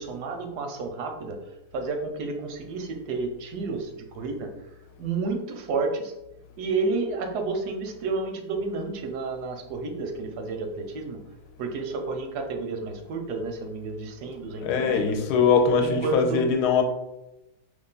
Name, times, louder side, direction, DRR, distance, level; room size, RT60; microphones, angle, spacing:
voice 1, 0.0-4.7 5.0-6.1 6.6-11.2 11.6-15.2 15.8-16.4, right 3 dB, 85° right, 4 dB, 1.1 m, -31 dB
voice 2, 14.6-16.8, left 5 dB, 90° left, 4 dB, 1.1 m, -22 dB
2.9 x 2.4 x 3.8 m, 0.94 s
omnidirectional pair, 1.7 m